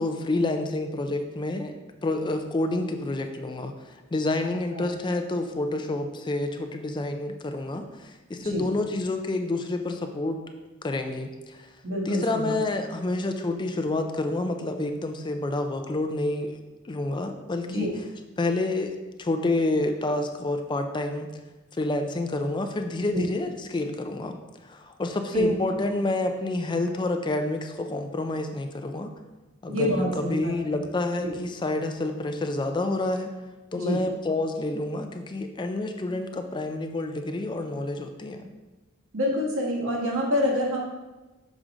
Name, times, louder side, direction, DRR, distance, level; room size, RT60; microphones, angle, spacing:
voice 1, 0.0-1.8 2.0-3.7 4.1-10.4 10.8-11.7 12.1-16.6 16.8-17.9 18.4-21.3 21.8-29.1 29.6-33.3 33.7-38.5, left 2 dB, 20° left, 6 dB, 0.4 m, -28 dB
voice 2, 4.4-4.9 8.4-8.7 11.8-12.6 17.7-18.0 23.1-23.2 25.3-25.5 29.7-30.9 31.2-31.4 33.7-34.0 39.1-40.8, left 1 dB, 70° right, -3 dB, 1.7 m, -27 dB
6.2 x 4.9 x 3.8 m, 1.1 s
head